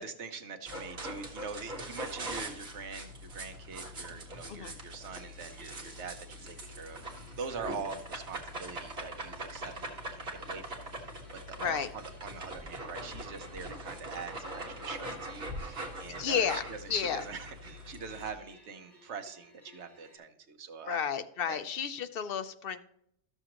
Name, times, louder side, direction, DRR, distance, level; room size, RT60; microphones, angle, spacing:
voice 1, 0.0-11.2 11.5-21.1 21.5-21.6, right 5 dB, 90° right, 8 dB, 1.2 m, -43 dB
sound 1, 0.7-18.3, right 1 dB, 65° right, 1.8 m, -42 dB
sound 2, 5.1-20.2, equal, ahead, 2.5 m, -60 dB
voice 2, 11.6-11.9 16.2-17.2 20.9-22.8, left 7 dB, 60° left, 10 dB, 0.8 m, -32 dB
13.0 x 6.8 x 2.9 m, 0.72 s
omnidirectional pair, 1.1 m